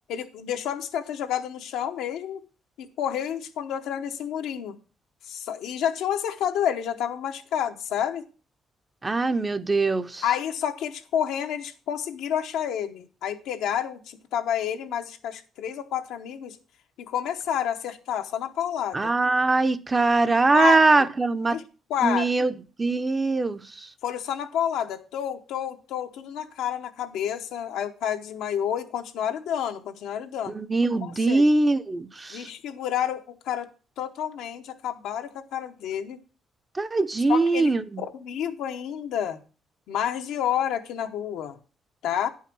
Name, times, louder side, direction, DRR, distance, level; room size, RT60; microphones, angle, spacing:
voice 1, 0.1-2.4 2.8-4.8 5.3-8.3 10.2-16.6 17.1-19.1 20.5-20.8 21.5-21.6 21.9-22.3 24.0-30.5 31.0-31.5 32.3-33.7 34.0-36.2 37.3-39.4 39.9-41.6 42.0-42.3, left 9 dB, 90° left, 0.9 m, -29 dB
voice 2, 9.0-10.2 18.9-21.6 22.0-23.9 30.5-32.5 36.7-38.0, right 3 dB, 25° right, 0.6 m, -22 dB
9.3 x 5.6 x 6.1 m
cardioid pair, 90°, 0 cm